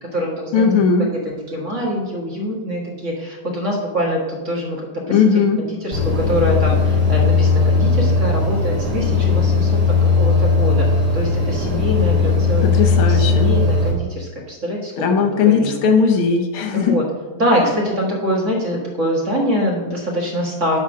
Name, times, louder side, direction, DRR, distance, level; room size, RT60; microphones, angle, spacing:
voice 1, 0.0-0.8 1.1-4.8 5.1-12.6 13.1-14.9 15.2-15.8 16.7-17.0 17.3-20.8, equal, 35° right, -2 dB, 1.7 m, -24 dB
voice 2, 0.5-1.1 5.1-5.6 12.6-13.5 15.0-17.0, left 5 dB, 80° left, 4 dB, 1.7 m, -17 dB
sound 1, 5.9-13.9, left 4 dB, 20° right, 1.4 m, -17 dB
10.0 x 3.6 x 6.0 m, 1.2 s
omnidirectional pair, 2.3 m